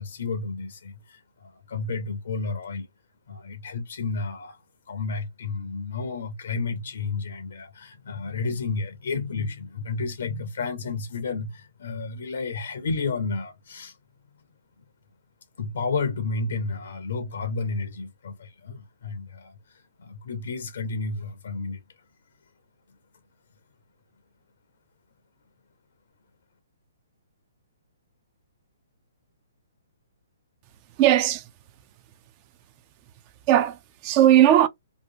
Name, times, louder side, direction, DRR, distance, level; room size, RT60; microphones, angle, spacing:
voice 1, 0.0-2.9 3.3-14.0 15.6-22.0, left 4 dB, 60° left, 0.5 m, -31 dB
voice 2, 31.0-31.4 33.5-34.7, right 12 dB, 35° right, 0.3 m, -18 dB
2.7 x 2.3 x 2.6 m
figure-of-eight pair, 125°, 0 cm